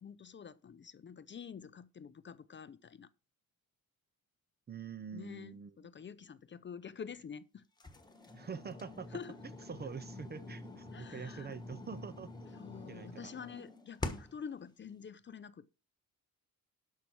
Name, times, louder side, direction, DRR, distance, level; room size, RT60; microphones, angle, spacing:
voice 1, 0.0-3.1 5.1-7.6 9.1-9.4 10.9-11.6 12.5-15.8, left 7 dB, 35° left, 0.5 m, -48 dB
voice 2, 4.7-5.7 8.3-9.1 9.7-12.3 12.9-13.3, right 6 dB, 30° right, 0.6 m, -45 dB
sound 1, 7.8-14.5, left 2 dB, 10° left, 1.3 m, -46 dB
12.0 x 5.6 x 4.5 m
cardioid pair, 140°, 35 cm